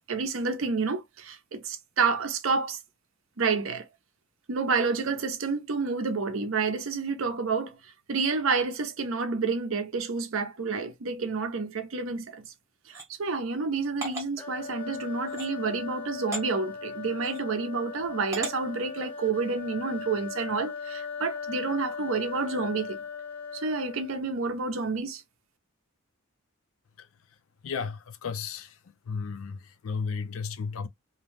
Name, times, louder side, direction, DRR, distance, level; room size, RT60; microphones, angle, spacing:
voice 1, 0.0-2.8 3.4-3.9 4.5-7.8 8.1-12.5 12.9-23.0 23.5-25.2, right 4 dB, 65° right, 0.6 m, -29 dB
sound 1, 12.9-13.1 14.0-14.3 15.3-15.5 16.3-16.5 17.2-17.4 18.3-18.5, right 1 dB, 15° right, 0.8 m, -35 dB
sound 2, 14.4-24.3, left 5 dB, 10° left, 0.4 m, -38 dB
voice 2, 27.6-28.7 29.1-30.9, left 5 dB, 65° left, 0.4 m, -34 dB
2.6 x 2.0 x 3.1 m
head